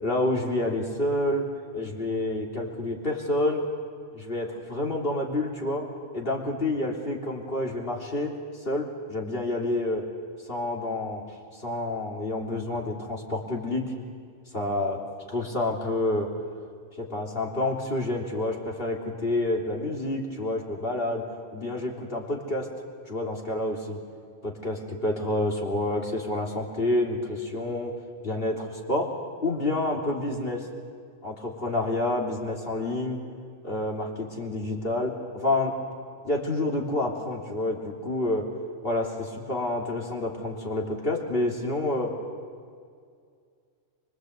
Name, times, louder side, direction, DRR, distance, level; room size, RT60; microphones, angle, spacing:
voice 1, 0.0-1.5 1.7-3.6 4.1-5.9 6.1-8.3 8.7-10.0 10.5-11.3 11.6-13.9 14.5-15.0 15.3-16.3 17.0-21.2 21.5-22.7 23.1-24.0 24.4-28.0 28.2-29.1 29.4-30.7 31.2-33.2 33.6-35.8 36.2-38.5 38.8-42.1, left 2 dB, 45° left, -1 dB, 3.6 m, -28 dB
24.5 x 24.5 x 8.2 m, 2.2 s
omnidirectional pair, 1.3 m